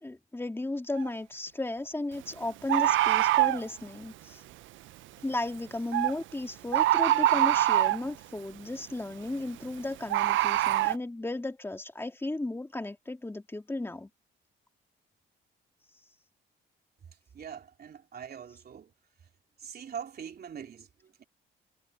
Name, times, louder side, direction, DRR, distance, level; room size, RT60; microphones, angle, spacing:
voice 1, 0.0-4.4 5.2-14.1, left 2 dB, 10° left, 2.3 m, -35 dB
Bird, 1.0-1.1 2.7-3.6 5.9-6.1 6.7-8.1 10.1-10.9, right 15 dB, 75° right, 0.5 m, -24 dB
voice 2, 17.3-18.9 19.6-21.2, right 8 dB, 50° right, 3.2 m, -43 dB
cardioid pair, 90°, 20 cm